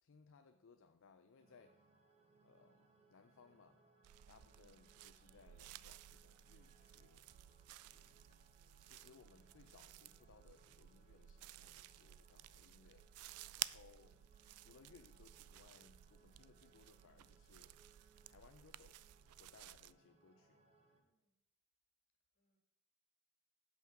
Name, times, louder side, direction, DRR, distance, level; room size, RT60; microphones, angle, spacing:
voice 1, 0.0-1.9 2.4-3.8 4.3-7.3 7.9-8.3 8.8-13.1 13.5-14.2 14.5-17.8 18.2-19.0 19.3-20.6, left 5 dB, 60° left, 8 dB, 0.5 m, -66 dB
sound 1, 1.4-21.0, right 2 dB, 30° right, 1.1 m, -72 dB
sound 2, 4.0-19.9, right 15 dB, 80° right, 0.3 m, -54 dB
voice 2, 13.4-13.7 21.0-21.4 22.3-22.6, right 1 dB, 40° left, -1 dB, 2.4 m, -88 dB
7.5 x 5.8 x 5.8 m, 0.87 s
head